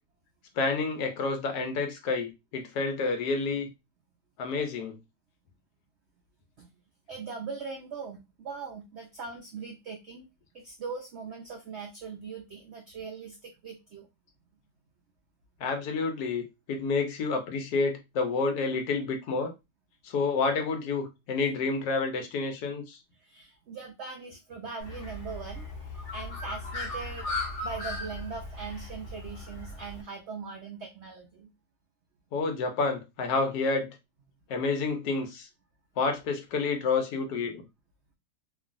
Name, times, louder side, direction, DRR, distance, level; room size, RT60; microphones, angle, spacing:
voice 1, 0.6-3.7 4.4-5.0 15.6-19.5 20.0-23.0 32.3-33.9 34.5-35.5 36.0-37.6, left 4 dB, 75° left, 1.2 m, -29 dB
voice 2, 7.1-10.3 10.5-14.1 23.2-27.3 27.6-31.5, right 5 dB, 80° right, 0.6 m, -40 dB
Bird, 24.8-30.0, left 2 dB, 50° left, 1.0 m, -37 dB
3.0 x 2.5 x 2.4 m
omnidirectional pair, 1.8 m